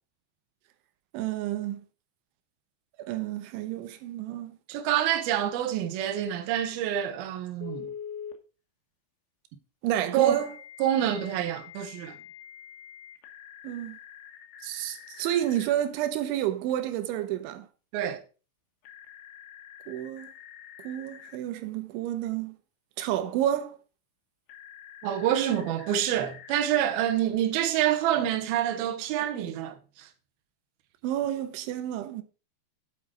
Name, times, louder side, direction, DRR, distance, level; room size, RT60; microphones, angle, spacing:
voice 1, 1.1-1.8 3.0-4.5 9.8-10.5 13.6-14.0 14.6-17.7 19.9-20.3 20.8-22.6 23.0-23.8 31.0-32.2, right 12 dB, 85° right, 3.3 m, -30 dB
voice 2, 4.7-7.9 10.1-10.4 10.8-12.2 17.9-18.2 25.0-30.1, right 11 dB, 70° right, 2.7 m, -27 dB
Telephone, 7.6-8.4 10.2-15.7 18.8-21.4 24.5-27.0, left 9 dB, 75° left, 3.5 m, -46 dB
8.1 x 8.0 x 4.9 m
omnidirectional pair, 5.3 m